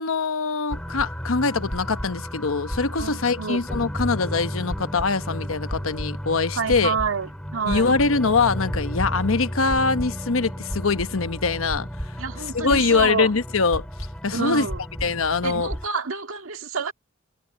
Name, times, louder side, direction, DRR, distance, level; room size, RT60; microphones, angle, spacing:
voice 1, 0.0-7.0 7.7-12.2 12.5-13.9 14.2-14.7 15.0-15.7, left 4 dB, 85° left, 1.0 m, -23 dB
sound 1, 0.7-15.9, equal, 5° left, 4.3 m, -32 dB
voice 2, 3.0-3.6 6.5-7.9 12.2-13.3 14.3-14.8 15.4-16.9, right 5 dB, 85° right, 1.8 m, -28 dB
head